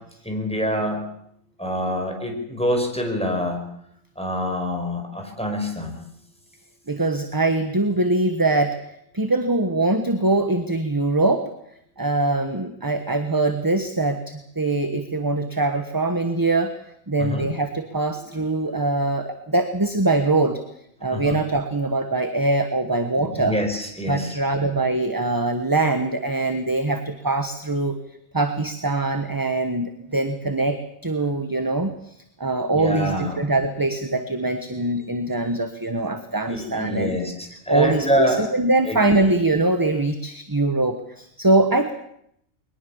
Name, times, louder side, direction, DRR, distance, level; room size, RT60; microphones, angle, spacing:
voice 1, 0.2-1.1 1.6-3.6 4.2-6.0 17.2-17.5 21.1-21.4 23.4-24.3 32.7-33.4 36.5-38.4 38.9-39.0, equal, 5° left, 2 dB, 5.0 m, -25 dB
voice 2, 6.9-8.8 9.1-11.5 12.0-16.8 17.1-20.6 21.0-23.6 24.1-28.0 28.3-37.2 37.7-41.9, right 2 dB, 15° right, 7 dB, 1.3 m, -23 dB
22.0 x 20.0 x 7.2 m, 0.72 s
omnidirectional pair, 1.4 m